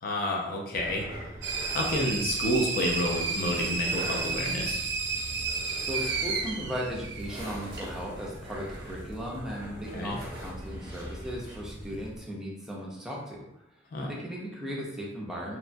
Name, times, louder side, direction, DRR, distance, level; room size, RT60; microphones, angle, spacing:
voice 1, 0.0-1.0 1.7-4.8 9.9-10.2 13.9-14.1, left 1 dB, 50° left, 0 dB, 0.4 m, -29 dB
Breathing and Weezing, 0.7-12.2, right 1 dB, 25° right, 1.0 m, -42 dB
sound 1, 1.4-7.8, right 4 dB, 65° right, 0.4 m, -32 dB
voice 2, 5.8-13.5 14.0-15.6, equal, 5° right, -4 dB, 0.5 m, -37 dB
2.9 x 2.2 x 2.6 m, 0.82 s
head